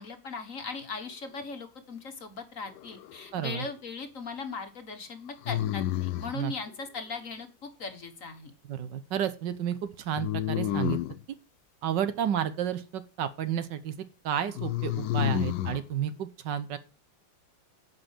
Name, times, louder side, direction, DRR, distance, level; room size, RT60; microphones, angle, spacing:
voice 1, 0.0-8.5, left 4 dB, 45° left, 6 dB, 1.7 m, -39 dB
sound 1, 2.7-3.4 5.4-6.4 10.2-11.2 14.5-15.8, left 12 dB, 70° left, 1.2 m, -30 dB
voice 2, 3.3-3.6 6.3-6.5 8.7-11.0 11.8-13.9 14.2-16.8, right 9 dB, 70° right, 13 dB, 1.5 m, -31 dB
10.5 x 5.4 x 7.2 m, 0.33 s
omnidirectional pair, 2.0 m